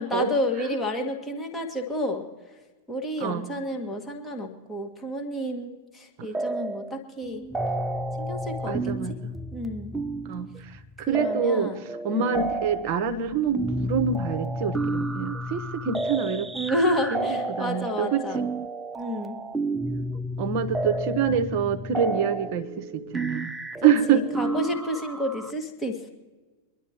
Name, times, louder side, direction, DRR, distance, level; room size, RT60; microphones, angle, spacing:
voice 1, 0.0-2.3 2.9-7.5 8.2-9.2 9.5-10.0 11.1-11.8 12.1-12.5 16.5-18.4 18.9-19.4 23.8-26.1, left 1 dB, 10° left, 1 dB, 2.0 m, -30 dB
sound 1, 6.3-7.0 7.2-25.5, right 2 dB, 10° right, 0.5 m, -31 dB
voice 2, 8.7-9.3 10.2-16.5 17.1-18.2 20.4-23.5 23.8-24.2, right 7 dB, 40° right, 11 dB, 1.2 m, -26 dB
25.0 x 11.5 x 3.1 m, 1.3 s
figure-of-eight pair, 90°, 0 cm